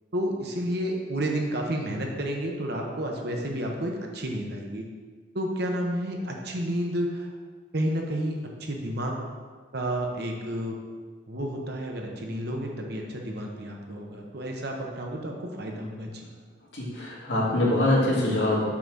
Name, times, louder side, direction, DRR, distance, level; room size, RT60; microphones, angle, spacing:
voice 1, 0.1-4.8 5.3-7.3 7.7-9.2 9.7-10.7 11.3-16.1, right 1 dB, 60° right, 1 dB, 1.0 m, -31 dB
voice 2, 16.7-18.6, left 1 dB, 75° left, -5 dB, 2.0 m, -24 dB
5.9 x 3.9 x 6.1 m, 1.5 s
head